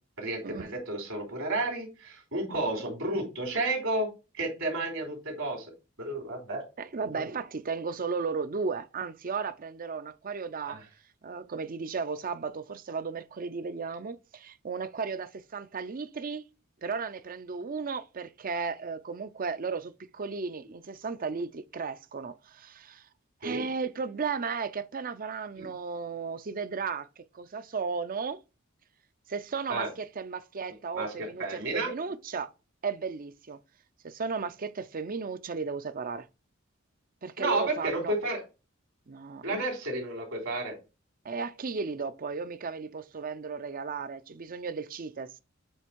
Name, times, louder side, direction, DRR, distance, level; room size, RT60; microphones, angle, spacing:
voice 1, 0.2-5.7 6.0-6.6 7.0-7.1 10.7-10.8 23.4-23.6 25.6-25.7 29.7-29.9 30.9-31.9 37.4-38.4 39.4-40.7, right 2 dB, 75° right, 3.5 m, -32 dB
voice 2, 6.8-10.8 11.2-16.5 16.8-23.0 23.4-28.4 29.3-32.5 32.8-33.6 34.0-36.3 37.2-38.1 39.1-39.6 41.2-45.4, right 5 dB, 45° right, 0.6 m, -35 dB
8.0 x 3.4 x 4.6 m
head